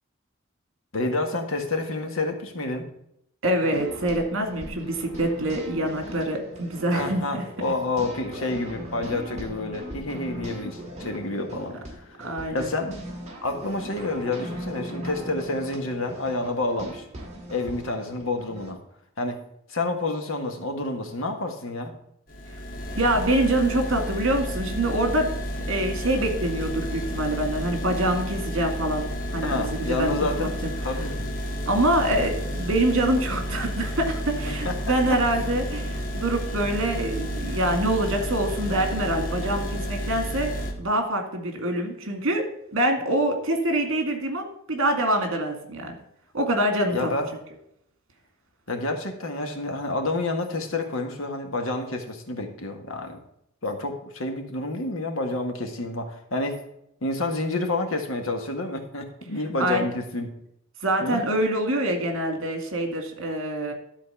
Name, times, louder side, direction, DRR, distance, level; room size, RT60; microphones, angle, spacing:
voice 1, 0.9-2.9 6.9-12.2 12.5-13.0 13.4-17.1 17.5-18.8 19.2-19.4 19.7-21.9 29.4-31.2 34.5-34.7 35.1-35.2 46.9-47.3 48.7-53.2 53.6-56.6 57.0-60.3 61.0-61.2, left 2 dB, 75° left, 4 dB, 1.6 m, -29 dB
voice 2, 3.4-7.4 12.2-12.7 23.0-25.3 25.7-29.1 29.3-30.7 31.7-42.4 42.7-45.9 46.3-47.1 59.6-59.8 60.8-63.7, right 1 dB, 70° right, 4 dB, 2.1 m, -25 dB
sound 1, 3.6-18.7, equal, 35° right, 2.6 m, -39 dB
sound 2, 22.3-40.7, equal, 45° left, 2.0 m, -31 dB
12.0 x 4.2 x 6.9 m, 0.77 s
head